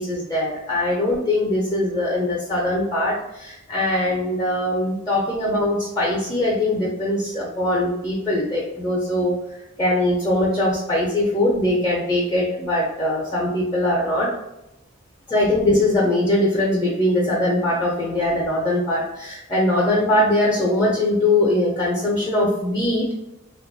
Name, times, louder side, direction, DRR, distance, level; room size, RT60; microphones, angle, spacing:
voice 1, 0.0-14.4 15.3-23.1, left 1 dB, 15° left, -4 dB, 0.4 m, -21 dB
2.9 x 2.2 x 2.5 m, 0.91 s
head